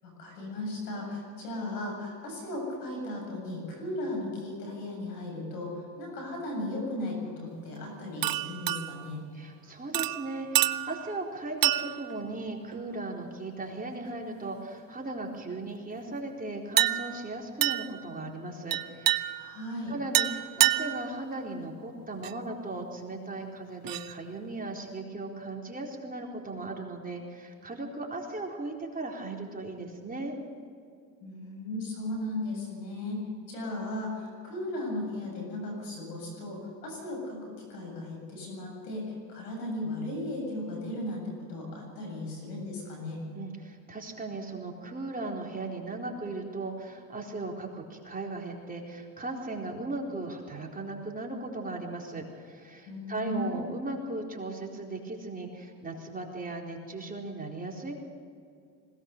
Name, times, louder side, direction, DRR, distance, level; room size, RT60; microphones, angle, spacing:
voice 1, 0.0-9.2 19.3-19.9 31.2-43.2 52.9-53.6, left 1 dB, 90° left, 0 dB, 7.7 m, -36 dB
sound 1, 8.2-9.1 9.9-11.2 11.6-12.2 12.7-13.0 16.8-17.3 17.6-18.0 18.7-19.6 20.1-21.1 22.2-22.3 23.8-24.1, right 14 dB, 45° right, 0.9 m, -28 dB
voice 2, 9.3-19.4 19.9-30.4 43.3-58.0, right 2 dB, 20° right, 0 dB, 4.2 m, -37 dB
21.0 x 18.5 x 6.8 m, 2.3 s
hypercardioid pair, 80°, 47 cm